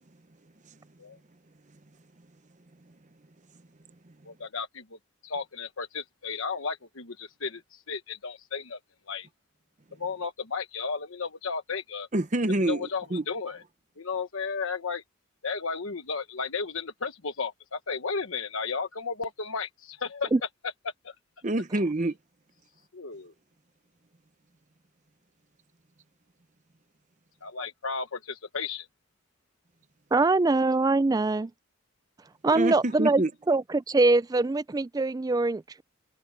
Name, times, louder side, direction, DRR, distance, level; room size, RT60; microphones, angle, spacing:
voice 1, 4.2-8.8 9.1-9.3 9.9-12.1 12.6-13.6 14.0-15.0 15.4-20.3 20.6-21.2 22.9-23.3 27.4-28.9, left 5 dB, 75° left, 1.2 m, -34 dB
voice 2, 12.1-13.2 21.4-22.2 32.5-33.3, right 1 dB, 35° right, 0.9 m, -27 dB
voice 3, 30.1-31.5 32.4-33.2 33.5-35.8, right 3 dB, 20° right, 0.3 m, -23 dB
head